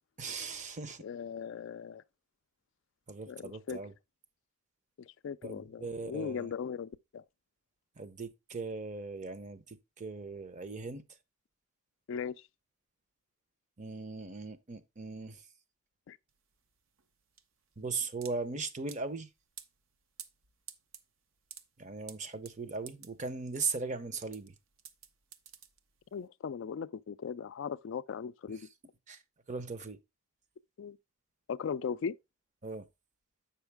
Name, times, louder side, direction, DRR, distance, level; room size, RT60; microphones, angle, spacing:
voice 1, 0.2-1.0 3.1-3.9 5.4-6.5 8.0-11.0 13.8-15.5 17.8-19.3 21.8-24.5 28.5-28.7 29.1-29.2 29.5-30.0 32.6-32.9, right 4 dB, 35° right, 0.7 m, -39 dB
voice 2, 1.0-2.0 3.3-3.8 5.0-7.2 12.1-12.4 16.1-16.2 26.1-28.6 30.8-31.0 31.5-32.1, left 6 dB, 65° left, 0.3 m, -38 dB
sound 1, 16.3-26.2, right 8 dB, 80° right, 0.8 m, -52 dB
7.9 x 5.6 x 3.4 m
head